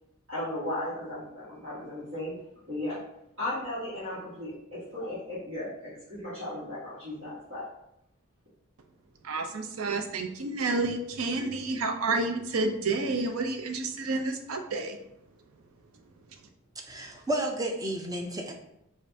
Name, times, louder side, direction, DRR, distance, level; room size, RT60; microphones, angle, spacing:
voice 1, 0.3-2.3 2.7-3.0 3.4-7.6, left 1 dB, 65° right, -11 dB, 1.4 m, -36 dB
voice 2, 9.2-15.0, right 3 dB, 85° right, 6 dB, 0.5 m, -30 dB
voice 3, 16.9-18.5, right 1 dB, 15° right, 2 dB, 0.4 m, -31 dB
5.1 x 2.6 x 2.7 m, 0.80 s
head